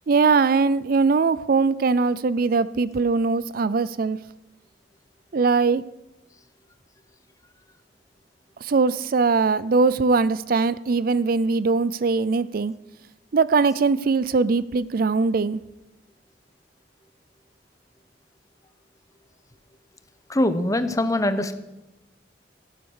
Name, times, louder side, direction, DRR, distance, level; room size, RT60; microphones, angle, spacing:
voice 1, 0.1-4.2 5.3-5.9 8.6-12.7 13.3-15.6, right 4 dB, 50° right, 17 dB, 0.4 m, -21 dB
voice 2, 20.3-21.5, left 1 dB, 20° left, 11 dB, 0.9 m, -22 dB
15.0 x 11.5 x 6.4 m, 0.98 s
head